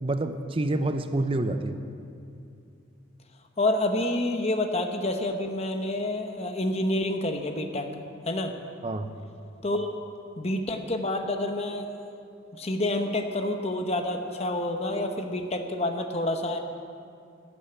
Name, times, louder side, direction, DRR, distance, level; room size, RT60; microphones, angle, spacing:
voice 1, 0.0-1.8 8.8-9.1, right 2 dB, 25° right, 8 dB, 0.6 m, -27 dB
voice 2, 3.6-7.9 8.3-8.5 9.6-9.9 10.4-11.8 12.6-16.6, left 1 dB, 30° left, 5 dB, 0.9 m, -28 dB
11.5 x 11.5 x 7.8 m, 2.5 s
head